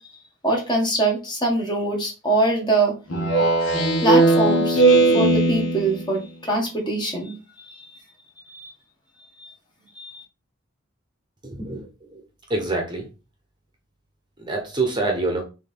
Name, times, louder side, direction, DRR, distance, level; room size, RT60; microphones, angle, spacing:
voice 1, 0.4-2.9 4.0-4.8 5.1-7.4 7.6-7.9 8.5-8.7 9.4-9.5 10.0-10.2, right 2 dB, 20° left, -1 dB, 1.8 m, -23 dB
Speech synthesizer, 3.1-6.1, right 2 dB, 65° left, 1.9 m, -18 dB
voice 2, 11.5-11.9 12.5-13.0 14.4-15.4, right 2 dB, 20° right, 2 dB, 1.2 m, -25 dB
6.6 x 3.2 x 4.5 m, 0.30 s
head